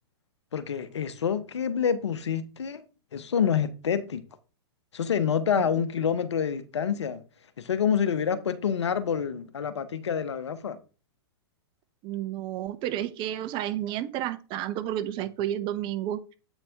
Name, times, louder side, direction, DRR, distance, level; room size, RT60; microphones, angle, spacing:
voice 1, 0.5-2.8 3.1-4.2 4.9-7.2 7.6-10.8, left 7 dB, 85° left, 0.7 m, -27 dB
voice 2, 12.0-16.3, right 12 dB, 35° right, 0.6 m, -31 dB
7.9 x 4.2 x 3.4 m
hypercardioid pair, 115°, 14 cm